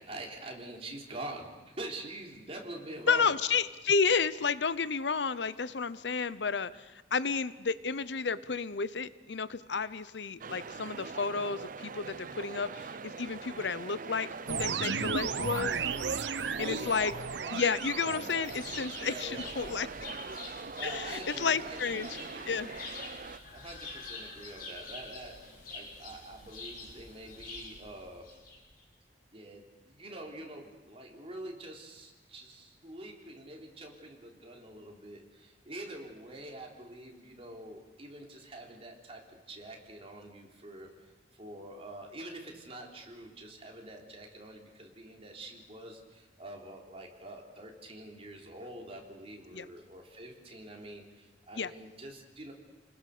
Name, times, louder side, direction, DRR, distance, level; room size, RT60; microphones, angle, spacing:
voice 1, 0.0-3.3 16.3-17.1 17.4-17.6 18.0-18.5 19.0-20.1 20.8-22.8 23.5-25.4 25.7-28.3 29.3-40.9 41.3-52.5, right 1 dB, 35° right, 0 dB, 3.8 m, -45 dB
voice 2, 3.1-15.8 16.6-17.1 17.5-19.9 20.8-22.1 22.5-22.7 49.5-49.7 51.6-51.7, left 5 dB, 80° left, 15 dB, 0.8 m, -31 dB
sound 1, 10.4-23.4, right 5 dB, 50° right, 0.7 m, -44 dB
sound 2, 14.5-19.9, right 5 dB, 85° right, 0.9 m, -35 dB
sound 3, 18.4-28.8, left 3 dB, 55° left, 6.7 m, -46 dB
30.0 x 21.0 x 6.8 m, 1.2 s
head